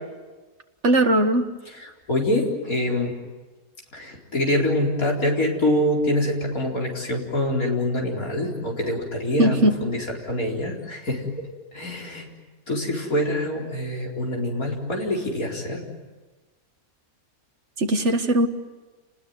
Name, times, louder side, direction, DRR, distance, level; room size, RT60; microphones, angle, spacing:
voice 1, 0.8-1.5 9.4-9.8 17.8-18.5, right 1 dB, 50° right, 6 dB, 2.0 m, -19 dB
voice 2, 1.8-3.1 3.9-11.3 11.7-12.3 12.7-15.8, left 1 dB, 75° left, -1 dB, 4.9 m, -25 dB
29.5 x 20.0 x 9.4 m, 1.3 s
omnidirectional pair, 1.5 m